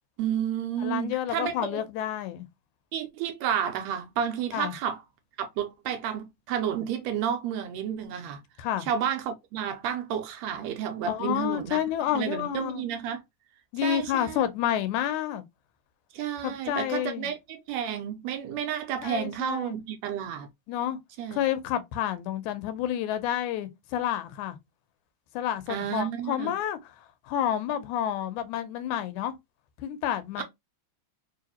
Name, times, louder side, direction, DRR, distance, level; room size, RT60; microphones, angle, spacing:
voice 1, 0.2-1.8 2.9-5.0 5.4-8.4 8.9-11.8 12.1-13.2 13.8-14.4 16.1-20.5 21.2-21.4 25.7-26.5 30.4-30.5, right 9 dB, 80° right, 1.8 m, -31 dB
voice 2, 0.8-2.5 4.5-4.7 8.6-8.9 11.1-12.9 13.7-15.4 16.4-17.3 19.0-19.8 20.7-21.0 21.3-24.6 25.3-27.0 27.3-29.4 29.8-30.4, left 10 dB, 90° left, 2.1 m, -29 dB
4.8 x 2.6 x 2.8 m
omnidirectional pair, 3.3 m